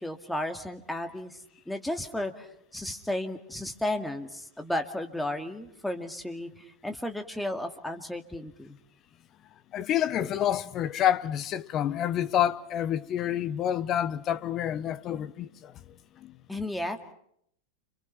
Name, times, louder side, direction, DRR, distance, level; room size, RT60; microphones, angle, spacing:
voice 1, 0.0-1.4 1.7-2.5 2.7-6.5 6.8-8.8 16.5-17.1, left 1 dB, 5° left, 2.4 m, -33 dB
voice 2, 9.7-15.7 16.2-16.4, left 10 dB, 30° left, 1.0 m, -28 dB
30.0 x 27.0 x 5.9 m
figure-of-eight pair, 90°, 0 cm